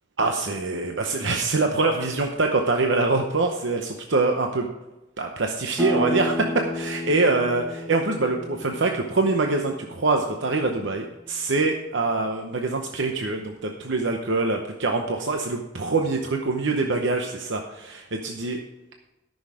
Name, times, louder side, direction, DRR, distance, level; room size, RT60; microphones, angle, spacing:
voice 1, 0.2-4.7 5.2-18.6, right 3 dB, 70° right, 3 dB, 0.8 m, -24 dB
sound 1, 5.8-11.2, left 1 dB, ahead, 1.5 m, -33 dB
13.5 x 6.4 x 4.9 m, 1.0 s
head